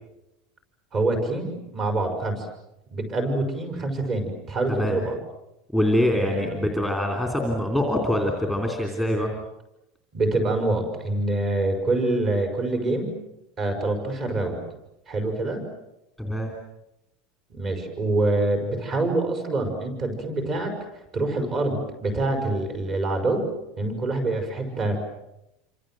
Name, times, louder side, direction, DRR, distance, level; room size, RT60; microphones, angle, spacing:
voice 1, 0.9-2.5 2.9-5.2 6.1-6.6 10.1-13.1 13.6-14.6 15.1-15.6 17.5-20.7 21.1-23.5 23.8-25.0, right 2 dB, 25° right, 5 dB, 5.9 m, -26 dB
voice 2, 5.7-9.3 16.2-16.5, left 1 dB, 5° right, 1 dB, 3.3 m, -24 dB
28.0 x 26.5 x 7.8 m, 0.89 s
supercardioid pair, 180°, 0 cm